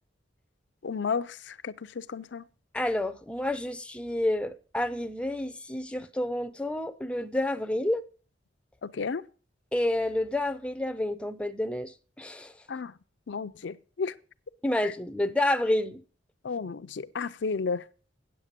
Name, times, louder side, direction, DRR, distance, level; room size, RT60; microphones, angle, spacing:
voice 1, 0.8-2.5 8.8-9.2 12.7-12.9 13.3-14.1 14.8-14.9 16.4-17.8, left 5 dB, 65° left, 0.5 m, -33 dB
voice 2, 2.7-8.0 9.7-12.5 14.6-16.0, left 1 dB, 5° left, 0.5 m, -29 dB
8.8 x 7.9 x 6.6 m
head